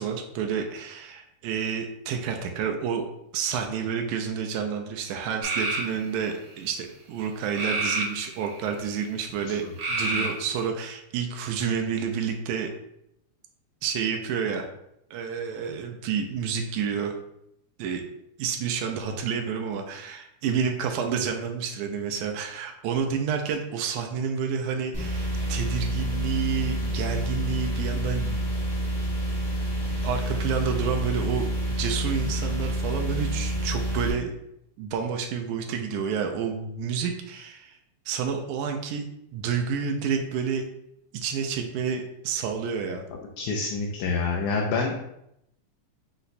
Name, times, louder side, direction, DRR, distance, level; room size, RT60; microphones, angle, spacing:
voice 1, 0.0-3.1 3.3-12.7 13.8-14.7 15.1-17.1 17.8-18.0 18.4-28.4 30.0-34.3 34.8-37.8 38.1-39.0 39.3-40.6 41.1-43.0, right 6 dB, 85° right, 3 dB, 2.0 m, -29 dB
sound 1, 5.4-5.9 7.5-8.6 9.8-10.6, right 2 dB, 60° right, 1.5 m, -28 dB
sound 2, 24.9-34.1, equal, 25° left, 0.5 m, -28 dB
voice 2, 43.4-45.0, left 4 dB, 85° left, 0 dB, 2.0 m, -27 dB
5.7 x 2.2 x 4.0 m, 0.79 s
omnidirectional pair, 3.4 m